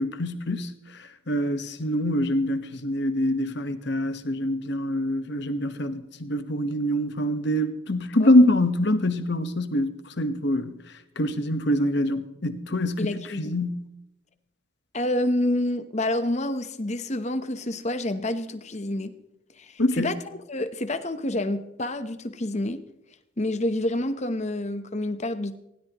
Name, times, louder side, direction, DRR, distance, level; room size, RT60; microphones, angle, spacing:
voice 1, 0.0-10.8 11.2-13.8 19.8-20.1, left 1 dB, 55° left, 1.3 m, -25 dB
voice 2, 13.0-13.6 14.9-19.1 19.6-20.2 20.5-22.8 23.4-25.6, left 1 dB, 35° left, 1.0 m, -28 dB
19.5 x 17.0 x 3.1 m
head